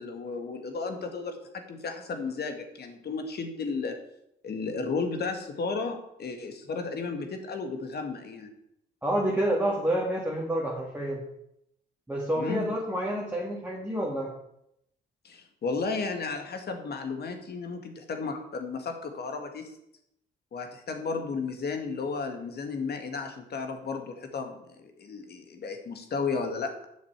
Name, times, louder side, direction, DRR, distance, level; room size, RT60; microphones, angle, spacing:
voice 1, 0.0-1.4 1.7-4.0 4.4-8.5 12.4-12.7 15.2-19.7 20.5-26.9, left 4 dB, 55° left, 6 dB, 2.0 m, -33 dB
voice 2, 9.0-11.2 12.1-14.3, right 1 dB, 10° right, -3 dB, 2.2 m, -28 dB
8.1 x 6.6 x 7.3 m, 0.78 s
cardioid pair, 90°, 20 cm